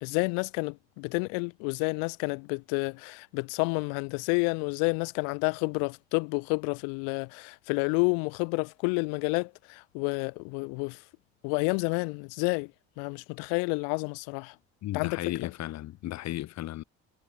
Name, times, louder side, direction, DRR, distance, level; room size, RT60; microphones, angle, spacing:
voice 1, 0.0-11.0 11.4-12.7 13.0-14.5 14.9-15.2, left 40 dB or more, 70° left, 1.3 m, -30 dB
voice 2, 14.8-16.8, left 15 dB, 50° left, 1.4 m, -35 dB
hypercardioid pair, 75°, 34 cm